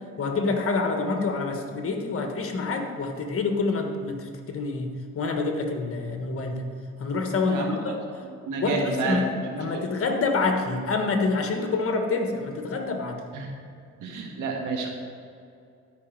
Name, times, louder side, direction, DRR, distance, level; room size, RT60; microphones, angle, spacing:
voice 1, 0.2-6.6 7.0-8.0 8.6-13.2, left 3 dB, 45° left, 4 dB, 1.4 m, -27 dB
voice 2, 7.5-8.0 8.5-9.9 13.3-13.5 14.0-14.9, right 3 dB, 90° right, 1 dB, 1.6 m, -30 dB
12.5 x 5.2 x 5.1 m, 2.4 s
cardioid pair, 90°, 30 cm